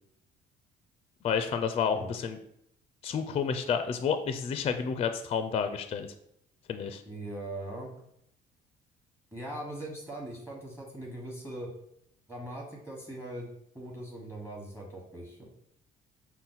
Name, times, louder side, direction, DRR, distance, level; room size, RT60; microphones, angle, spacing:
voice 1, 1.2-2.4 3.0-6.1 6.7-7.0, left 6 dB, 35° left, 9 dB, 0.4 m, -30 dB
voice 2, 7.1-7.9 9.3-11.7 12.3-13.5 13.7-15.5, right 1 dB, 10° right, -2 dB, 1.1 m, -40 dB
5.6 x 2.2 x 3.9 m, 0.74 s
cardioid pair, 110°, 17 cm